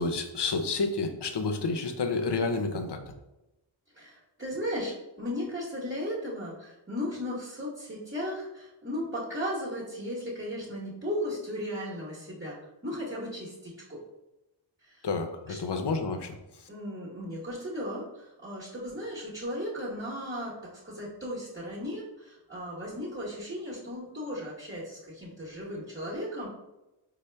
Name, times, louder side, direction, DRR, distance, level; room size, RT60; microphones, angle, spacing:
voice 1, 0.0-3.1 15.0-16.7, left 3 dB, 60° left, 5 dB, 0.6 m, -30 dB
voice 2, 3.9-12.6 12.8-14.0 14.8-15.1 15.5-15.6 16.7-26.5, equal, 25° right, -8 dB, 1.1 m, -36 dB
4.2 x 2.1 x 3.3 m, 0.95 s
wide cardioid pair, 40°, 48 cm